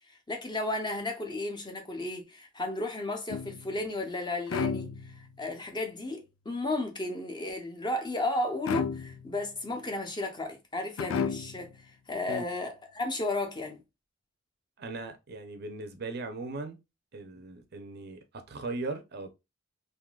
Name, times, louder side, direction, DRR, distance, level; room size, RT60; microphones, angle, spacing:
voice 1, 0.3-4.9 5.4-11.7 12.1-13.8, left 2 dB, 20° left, 0.6 m, -33 dB
sound 1, 3.3-3.9 4.5-5.4 8.7-9.5 11.0-11.8, left 6 dB, 90° left, 0.3 m, -33 dB
voice 2, 14.8-16.8 17.1-19.3, right 3 dB, 55° right, 0.6 m, -38 dB
3.7 x 2.6 x 2.2 m
head